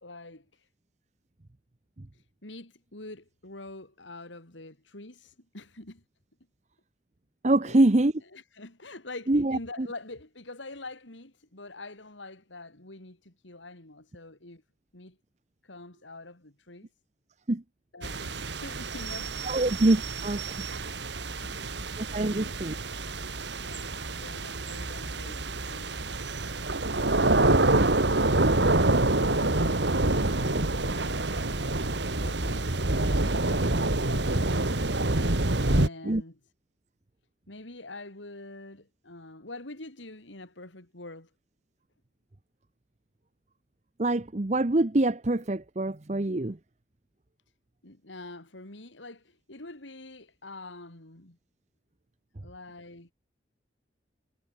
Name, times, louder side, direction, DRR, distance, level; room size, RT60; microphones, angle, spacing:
voice 1, 0.0-0.7 2.1-6.0 7.6-7.9 8.3-14.6 14.9-15.2 15.6-16.9 17.9-19.7 21.3-21.9 22.3-22.5 23.6-25.9 26.9-31.6 32.2-34.7 35.6-36.4 37.5-41.3 47.8-51.4 52.4-53.1, left 2 dB, 85° left, 3.8 m, -45 dB
voice 2, 7.4-8.1 9.3-9.9 17.5-17.6 19.4-20.6 22.0-22.8 36.0-36.2 44.0-46.6, right 2 dB, 40° right, 0.8 m, -25 dB
sound 1, 18.0-35.9, right 2 dB, 70° right, 2.1 m, -27 dB
head